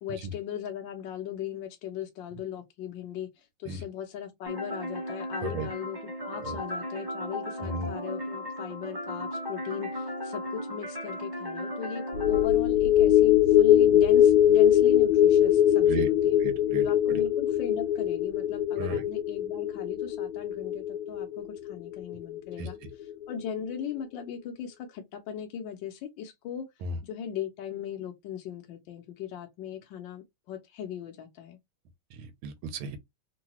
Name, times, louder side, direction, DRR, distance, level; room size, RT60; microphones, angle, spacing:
voice 1, 0.0-16.4 16.8-26.7 27.0-31.6, left 9 dB, 70° left, 1.3 m, -38 dB
sound 1, 4.5-12.5, left 1 dB, 15° right, 0.9 m, -36 dB
sound 2, 12.1-22.7 23.1-23.2, left 11 dB, 85° left, 1.5 m, -22 dB
voice 2, 16.4-16.8 18.8-19.0 22.6-22.7 26.8-26.9 32.4-33.0, right 4 dB, 75° right, 1.5 m, -34 dB
3.8 x 2.3 x 2.8 m
omnidirectional pair, 2.4 m